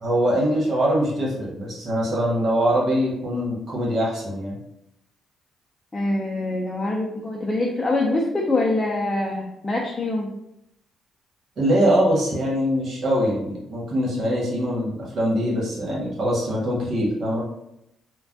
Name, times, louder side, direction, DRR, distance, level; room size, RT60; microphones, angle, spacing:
voice 1, 0.0-4.6 11.6-17.4, equal, 55° right, -4 dB, 1.4 m, -23 dB
voice 2, 5.9-10.3, left 2 dB, 20° left, -2 dB, 0.5 m, -24 dB
3.2 x 2.2 x 2.7 m, 0.81 s
cardioid pair, 90°, 0 cm